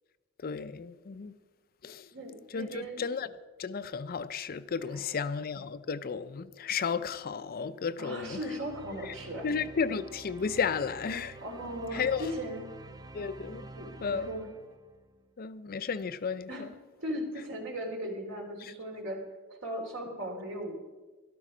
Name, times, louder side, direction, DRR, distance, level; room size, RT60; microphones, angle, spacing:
voice 1, 0.4-1.3 1.8-2.1 2.5-3.3 3.6-8.4 9.0-9.1 9.4-11.4 11.9-12.3 13.1-13.6 14.0-14.3 15.4-16.7 18.6-18.7, left 5 dB, 45° left, 0.5 m, -33 dB
voice 2, 2.1-3.0 4.9-5.1 8.0-9.5 11.4-12.7 13.5-14.5 16.5-16.7 17.0-19.2 19.5-20.7, equal, 65° right, 2.9 m, -38 dB
sound 1, 8.2-15.2, right 2 dB, 20° right, 0.5 m, -49 dB
13.0 x 12.5 x 5.0 m
head